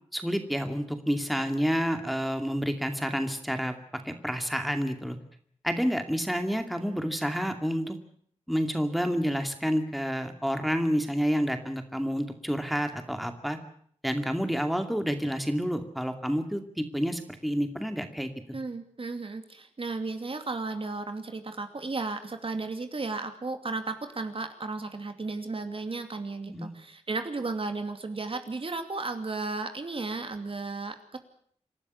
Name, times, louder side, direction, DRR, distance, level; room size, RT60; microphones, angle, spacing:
voice 1, 0.1-5.2 5.6-8.0 8.5-13.6 14.0-18.3 26.5-26.7, equal, ahead, 6 dB, 2.4 m, -29 dB
voice 2, 18.5-31.2, right 3 dB, 50° right, 7 dB, 2.6 m, -34 dB
27.5 x 12.0 x 9.6 m, 0.63 s
wide cardioid pair, 85°, 12 cm